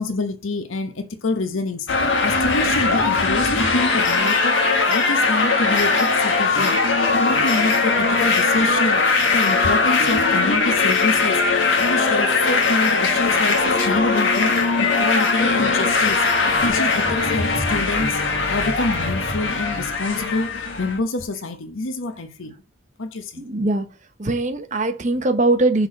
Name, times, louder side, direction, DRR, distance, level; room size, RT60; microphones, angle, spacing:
voice 1, 0.0-9.0 9.3-22.6 23.0-23.4, left 2 dB, 85° left, 1.0 m, -27 dB
sound 1, 1.9-21.0, left 3 dB, 70° left, 1.6 m, -20 dB
voice 2, 23.4-23.9 24.2-25.9, right 2 dB, 40° right, 1.0 m, -21 dB
6.0 x 4.6 x 5.1 m
head